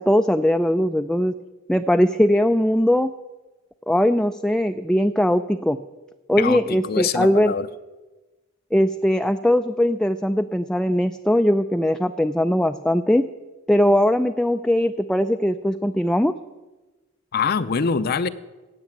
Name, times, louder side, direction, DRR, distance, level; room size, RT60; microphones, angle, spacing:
voice 1, 0.0-1.3 1.7-3.1 3.9-5.8 6.3-7.5 8.7-13.3 13.7-16.3, equal, 5° left, 8 dB, 0.4 m, -20 dB
voice 2, 6.4-7.7 17.3-18.3, left 5 dB, 50° left, 12 dB, 0.6 m, -24 dB
16.5 x 6.9 x 8.7 m, 1.1 s
head